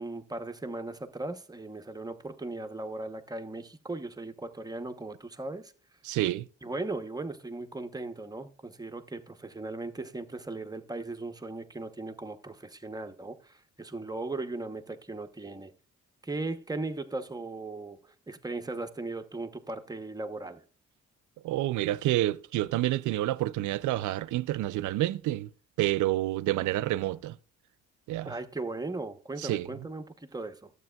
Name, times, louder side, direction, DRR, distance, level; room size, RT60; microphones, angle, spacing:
voice 1, 0.0-5.7 6.6-15.7 16.2-20.6 28.2-30.7, right 2 dB, 15° right, 0.9 m, -38 dB
voice 2, 6.0-6.5 21.4-25.5 25.8-27.4 28.1-28.3 29.4-29.7, right 15 dB, 75° right, 0.5 m, -28 dB
12.0 x 8.0 x 2.3 m
cardioid pair, 90°, 30 cm